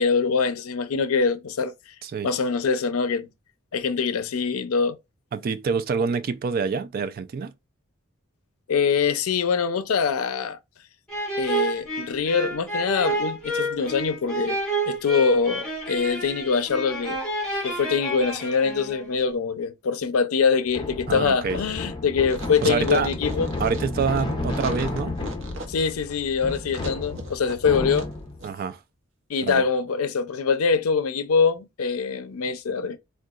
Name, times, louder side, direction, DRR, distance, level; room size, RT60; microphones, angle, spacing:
voice 1, 0.0-1.7 2.2-3.3 3.7-5.0 8.7-10.6 11.4-14.6 14.9-17.2 17.6-23.5 25.7-28.1 29.3-33.0, left 5 dB, 90° left, 0.5 m, -24 dB
voice 2, 5.3-7.5 13.8-13.9 21.1-21.6 22.6-23.1 23.6-25.2 28.4-28.8 29.4-29.6, right 5 dB, 45° right, 0.3 m, -26 dB
sound 1, 11.1-19.1, right 1 dB, 5° left, 1.3 m, -29 dB
sound 2, 20.7-28.5, left 2 dB, 25° left, 0.7 m, -32 dB
sound 3, 22.2-28.1 28.4-28.5, right 3 dB, 60° right, 0.7 m, -40 dB
3.7 x 2.3 x 2.3 m
head